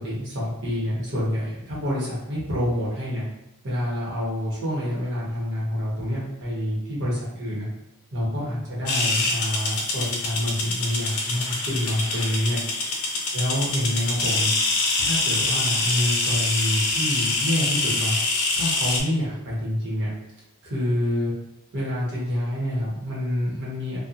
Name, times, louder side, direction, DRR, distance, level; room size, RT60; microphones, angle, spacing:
voice 1, 0.0-3.2 3.6-7.7 8.1-12.9 13.3-14.5 15.0-18.1 18.5-20.1 20.6-21.3 21.7-24.0, left 1 dB, 55° right, -7 dB, 1.0 m, -27 dB
sound 1, 8.9-19.0, left 3 dB, 80° left, 0.5 m, -25 dB
2.8 x 2.2 x 2.5 m, 0.88 s
head